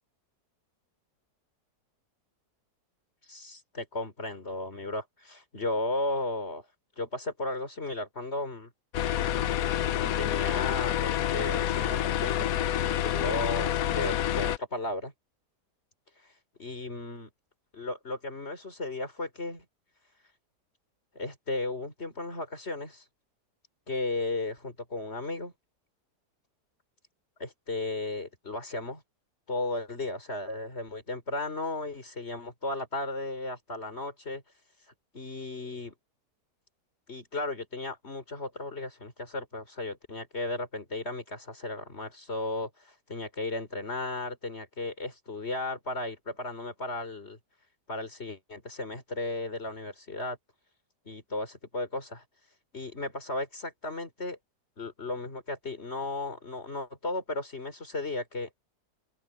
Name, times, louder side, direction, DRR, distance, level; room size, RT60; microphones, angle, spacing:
voice 1, 3.3-6.7 7.0-8.7 9.9-15.1 16.6-17.3 17.7-19.6 21.1-23.0 23.9-25.5 27.4-29.0 29.5-34.4 35.1-35.9 37.1-47.4 47.9-50.4 51.1-52.2 52.7-54.4 54.8-58.5, left 2 dB, 40° left, 4.1 m, -35 dB
sound 1, 8.9-14.6, left 11 dB, 65° left, 1.1 m, -28 dB
open air
omnidirectional pair, 1.8 m